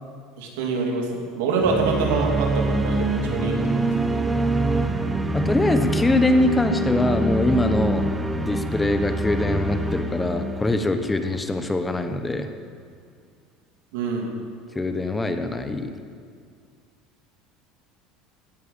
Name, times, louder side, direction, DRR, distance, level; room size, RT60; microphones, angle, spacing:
voice 1, 0.4-3.6 4.1-4.2 13.9-14.3, right 4 dB, 85° right, 0 dB, 3.0 m, -25 dB
sound 1, 1.6-11.7, right 2 dB, 10° right, 0.9 m, -25 dB
voice 2, 5.3-8.1 8.4-12.5 14.7-15.9, left 2 dB, 10° left, 7 dB, 1.0 m, -23 dB
16.5 x 9.6 x 7.3 m, 2.1 s
supercardioid pair, 115°, 0 cm